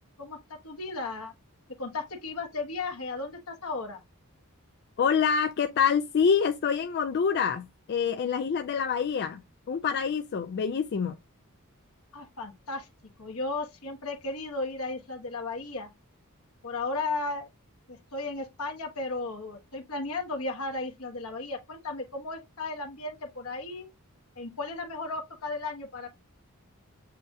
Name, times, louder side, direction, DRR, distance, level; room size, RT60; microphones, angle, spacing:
voice 1, 0.6-1.3 1.8-4.0 12.1-12.9 13.2-15.9 16.6-17.5 17.9-23.9 24.4-26.1, left 3 dB, 70° left, 1.2 m, -35 dB
voice 2, 5.0-9.4 9.7-11.2, left 6 dB, 50° left, 0.4 m, -26 dB
7.5 x 2.7 x 2.3 m
head